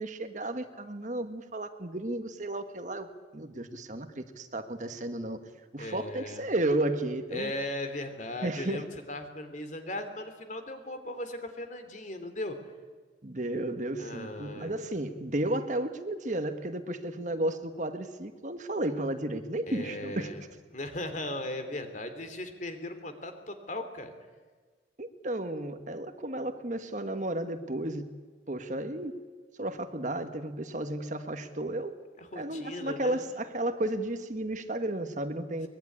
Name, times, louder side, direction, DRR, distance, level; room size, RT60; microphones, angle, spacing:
voice 1, 0.0-3.1 3.3-5.4 5.7-7.5 8.4-8.8 13.2-20.5 25.0-28.1 28.5-29.2 29.6-32.0 32.3-35.7, right 1 dB, 40° right, 8 dB, 1.4 m, -33 dB
voice 2, 5.8-6.5 7.3-12.6 14.0-14.7 19.7-20.4 20.7-24.1 32.2-33.2, left 1 dB, 40° left, 8 dB, 2.8 m, -38 dB
23.0 x 21.0 x 9.8 m, 1.4 s
head